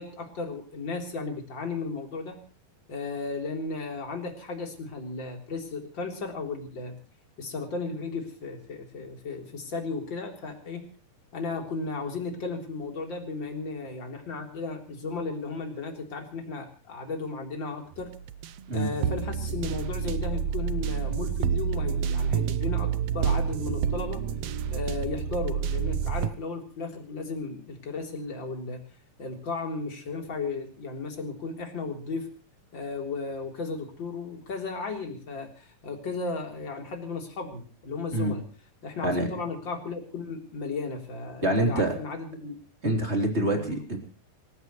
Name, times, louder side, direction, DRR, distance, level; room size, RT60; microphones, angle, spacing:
voice 1, 0.0-2.4 2.9-7.0 7.4-10.9 11.3-18.1 18.7-24.2 24.7-28.8 29.2-32.3 32.7-38.4 38.8-42.6 43.5-43.8, left 3 dB, 30° left, 2 dB, 4.1 m, -35 dB
sound 1, 17.9-26.3, right 7 dB, 80° right, 1.4 m, -29 dB
voice 2, 41.4-41.9 42.8-44.0, right 1 dB, 20° right, 3 dB, 3.6 m, -26 dB
27.0 x 16.0 x 3.2 m, 0.37 s
omnidirectional pair, 4.1 m